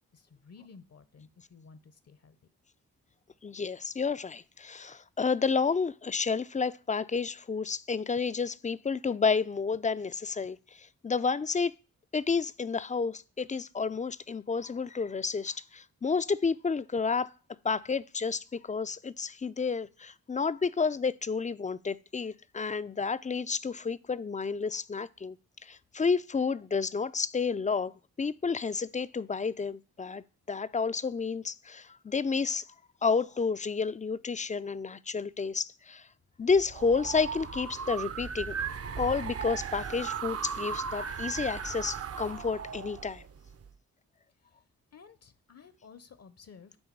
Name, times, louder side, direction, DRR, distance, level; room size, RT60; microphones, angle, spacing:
voice 1, 0.1-2.4 44.9-46.8, left 5 dB, 45° left, 0.8 m, -54 dB
voice 2, 3.4-11.7 12.1-17.3 17.6-25.4 25.6-32.7 33.0-36.1 36.4-38.6 39.0-43.2, left 5 dB, 20° left, 0.4 m, -30 dB
sound 1, 36.5-43.7, right 6 dB, 45° right, 0.7 m, -37 dB
9.6 x 3.4 x 4.6 m
supercardioid pair, 45°, 34 cm